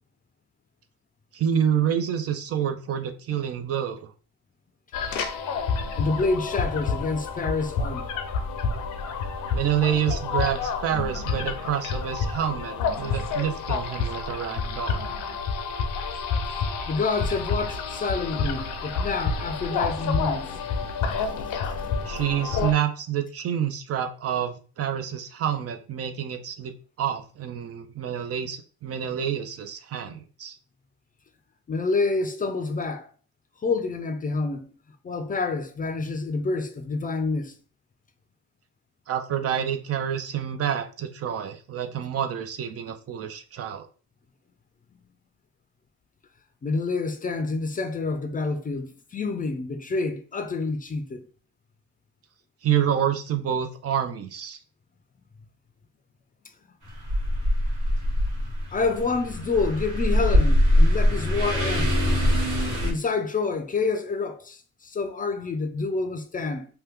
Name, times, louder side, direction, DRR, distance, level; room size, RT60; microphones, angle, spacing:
voice 1, 1.3-4.1 9.5-15.0 22.0-26.7 27.0-30.6 39.1-43.9 52.6-54.6, right 9 dB, 50° right, 0.5 m, -28 dB
sound 1, 4.9-22.7, left 5 dB, 90° left, 0.6 m, -29 dB
voice 2, 6.0-8.1 16.9-20.6 31.7-33.1 33.6-34.7 35.0-37.6 46.6-51.3 58.7-61.9 62.8-66.7, left 3 dB, 30° left, 0.4 m, -28 dB
sound 2, 56.9-62.9, left 1 dB, 75° right, 1.5 m, -22 dB
2.8 x 2.2 x 3.4 m
cardioid pair, 90°, 30 cm